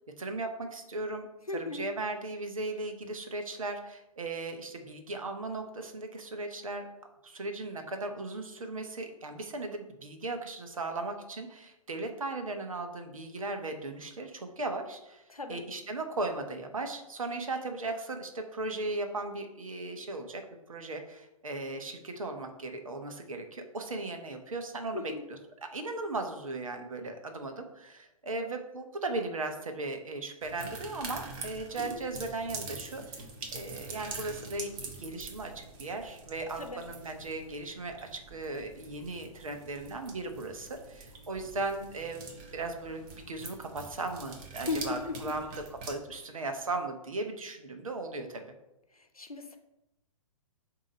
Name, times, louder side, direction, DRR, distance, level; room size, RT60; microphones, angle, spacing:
voice 1, 0.2-6.9 7.2-15.2 15.5-20.4 20.7-25.4 25.7-33.2 33.5-45.5 45.9-48.4, right 2 dB, 70° right, 5 dB, 1.1 m, -37 dB
voice 2, 1.5-1.8 15.3-15.6 24.9-25.2 36.6-36.8 44.7-45.4 48.9-49.6, left 3 dB, 90° left, 6 dB, 0.8 m, -36 dB
sound 1, 30.4-45.9, right 3 dB, 30° right, 1.0 m, -45 dB
7.4 x 3.0 x 5.1 m, 0.90 s
figure-of-eight pair, 120°, 18 cm